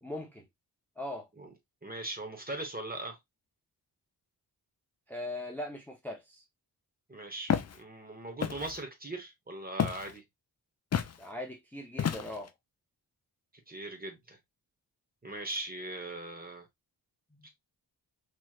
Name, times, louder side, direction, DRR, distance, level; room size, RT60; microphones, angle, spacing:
voice 1, 0.0-0.4 1.0-1.3 5.1-6.4 11.2-12.5 17.3-17.5, left 1 dB, 5° left, 0.6 m, -40 dB
voice 2, 1.8-3.2 7.1-10.2 13.7-14.4 15.2-16.7 17.4-17.5, right 2 dB, 20° right, 0.9 m, -40 dB
Walk footsteps, 7.5-7.8 8.4-8.8 9.8-10.1 10.9-11.2 12.0-12.5, left 8 dB, 40° left, 0.4 m, -30 dB
3.1 x 3.0 x 2.3 m
wide cardioid pair, 100°, 40 cm